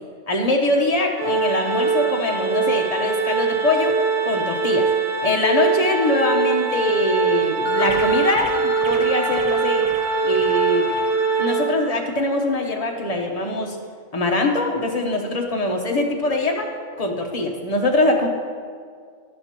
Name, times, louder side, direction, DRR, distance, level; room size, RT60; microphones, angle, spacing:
voice 1, 0.3-4.0 4.2-4.9 5.2-9.9 10.2-10.9 11.4-13.8 14.1-16.7 17.0-18.3, left 2 dB, 30° left, 1 dB, 1.0 m, -22 dB
Organ, 1.2-12.1, right 4 dB, 50° right, 1.3 m, -22 dB
sound 1, 7.6-12.0, equal, 15° right, 1.1 m, -34 dB
11.5 x 10.5 x 3.0 m, 2.1 s
omnidirectional pair, 1.3 m